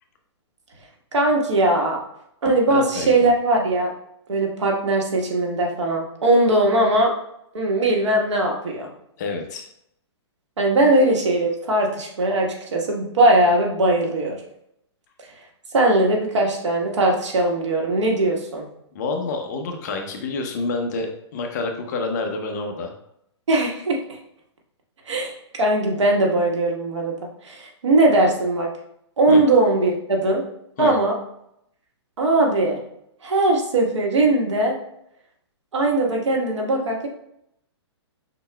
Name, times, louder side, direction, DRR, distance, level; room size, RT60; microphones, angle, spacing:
voice 1, 1.1-2.0 2.4-3.9 4.3-7.1 7.5-8.9 10.6-14.4 15.7-18.6 23.5-24.2 25.0-27.1 27.4-28.7 29.2-30.4 30.8-31.2 32.2-32.8 33.2-34.8 35.7-37.1, right 2 dB, 90° right, 0 dB, 1.4 m, -20 dB
voice 2, 2.7-3.3 9.2-9.7 18.9-22.9 29.3-29.4 30.8-30.9, left 3 dB, 40° left, 3 dB, 0.6 m, -28 dB
5.4 x 3.9 x 2.2 m, 0.76 s
hypercardioid pair, 160°, 15 cm